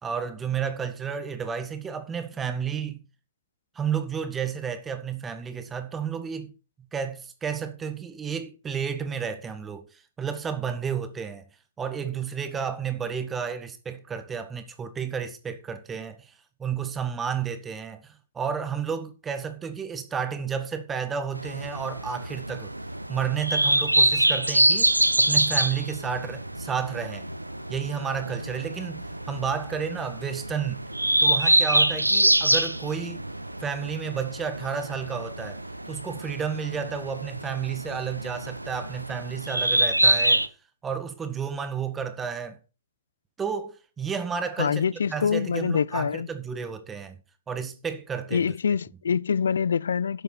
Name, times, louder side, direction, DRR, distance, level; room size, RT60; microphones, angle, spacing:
voice 1, 0.0-3.0 3.7-6.5 6.9-11.5 11.8-16.3 16.6-22.7 23.1-27.3 27.7-30.8 31.2-33.2 33.6-40.4 40.8-42.6 43.4-44.8 45.1-47.2 47.5-48.5, right 7 dB, 15° right, 1.7 m, -31 dB
sound 1, 21.3-40.5, right 1 dB, 90° right, 1.0 m, -25 dB
voice 2, 44.6-46.3 48.3-50.2, left 6 dB, 65° left, 0.4 m, -25 dB
12.0 x 7.8 x 4.6 m
figure-of-eight pair, 120°, 0 cm